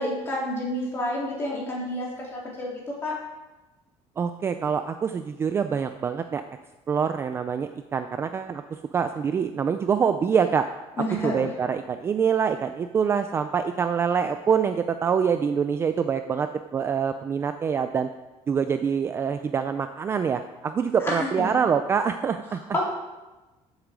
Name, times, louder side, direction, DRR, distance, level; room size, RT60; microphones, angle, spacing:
voice 1, 0.0-3.1 11.0-11.5 21.0-21.5 22.5-22.8, left 1 dB, 20° left, -4 dB, 3.5 m, -29 dB
voice 2, 4.2-6.4 6.9-8.6 8.9-10.7 11.2-18.1 18.5-22.6, right 6 dB, 20° right, 8 dB, 0.4 m, -25 dB
13.5 x 8.1 x 5.2 m, 1.1 s
cardioid pair, 180°, 12 cm